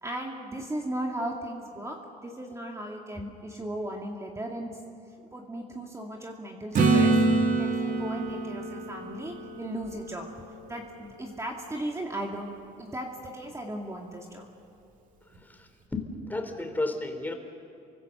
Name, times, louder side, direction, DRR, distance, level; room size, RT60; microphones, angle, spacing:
voice 1, 0.0-4.7 5.3-10.3 10.7-14.5 16.6-16.7, right 1 dB, 15° right, 0 dB, 2.3 m, -37 dB
Acoustic guitar / Strum, 6.7-10.5 15.4-15.5, right 3 dB, 50° right, 2.7 m, -26 dB
voice 2, 15.3-17.3, left 2 dB, 10° left, 5 dB, 3.5 m, -33 dB
29.0 x 24.0 x 6.8 m, 2.5 s
cardioid pair, 110°, 17 cm